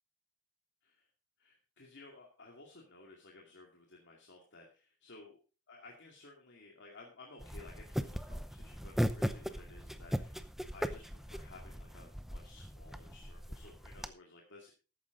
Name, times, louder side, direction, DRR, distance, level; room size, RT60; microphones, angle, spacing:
voice 1, 1.4-5.4 5.7-14.7, left 3 dB, 55° left, -1 dB, 2.4 m, -56 dB
sound 1, 7.4-14.1, equal, ahead, 0.7 m, -38 dB
13.5 x 9.4 x 3.9 m, 0.34 s
head